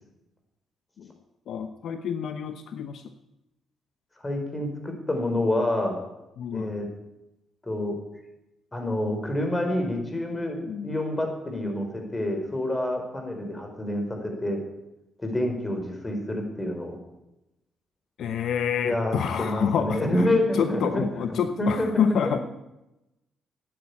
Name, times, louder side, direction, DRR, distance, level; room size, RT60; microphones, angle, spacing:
voice 1, 1.5-3.0 6.4-6.8 10.7-10.9 18.2-22.4, left 7 dB, 70° left, 9 dB, 0.9 m, -27 dB
voice 2, 4.2-6.0 6.5-6.9 7.6-8.0 8.7-14.6 15.2-17.0 18.8-22.4, left 1 dB, 20° left, 3 dB, 4.8 m, -28 dB
13.0 x 9.6 x 8.4 m, 0.93 s
cardioid pair, 90°, 0 cm